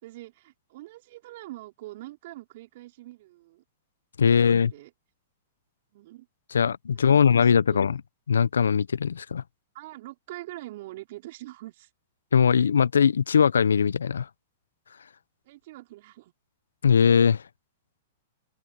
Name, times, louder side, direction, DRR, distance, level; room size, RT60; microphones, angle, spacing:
voice 1, 0.0-3.6 4.6-4.9 5.9-6.3 6.9-8.0 9.7-11.9 15.5-16.3, right 17 dB, 55° right, 4.1 m, -44 dB
voice 2, 4.2-4.7 6.5-8.0 8.3-9.4 12.3-14.3 16.8-17.4, left 7 dB, 80° left, 1.1 m, -20 dB
open air
hypercardioid pair, 105°, 0 cm